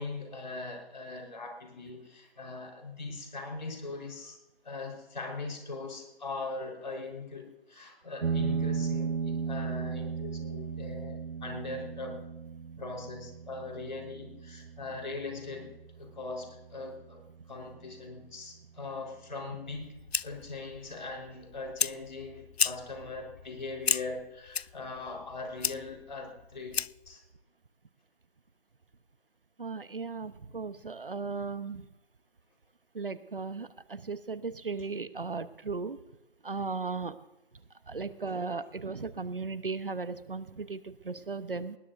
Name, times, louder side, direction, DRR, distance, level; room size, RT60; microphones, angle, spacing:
voice 1, 0.0-4.4 4.6-12.3 12.8-19.9 20.2-27.2 38.1-38.2, left 3 dB, 45° left, 2 dB, 4.3 m, -40 dB
sound 1, 8.2-17.2, right 5 dB, 80° right, 0.5 m, -36 dB
Fire, 19.7-27.1, left 7 dB, 80° left, 0.5 m, -35 dB
voice 2, 29.6-31.9 32.9-36.0 36.4-37.2 37.9-41.8, right 4 dB, 60° right, 14 dB, 0.9 m, -36 dB
20.0 x 19.0 x 2.6 m, 0.98 s
figure-of-eight pair, 160°, 31 cm